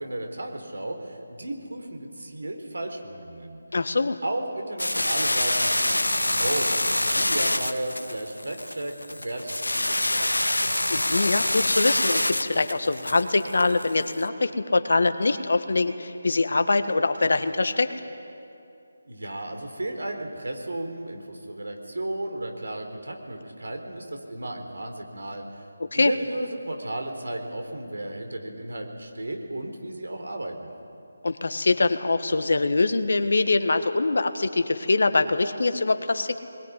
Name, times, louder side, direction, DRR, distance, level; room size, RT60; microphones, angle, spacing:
voice 1, 0.0-3.6 4.2-10.5 19.0-25.7 25.9-30.7, right 1 dB, 75° right, 4 dB, 4.0 m, -34 dB
voice 2, 3.7-4.2 10.9-17.9 25.9-26.1 31.2-36.4, left 3 dB, 65° left, 9 dB, 1.6 m, -23 dB
sound 1, 4.8-14.2, left 1 dB, 90° left, 1.2 m, -26 dB
21.5 x 21.0 x 9.7 m, 2.6 s
figure-of-eight pair, 155°, 0 cm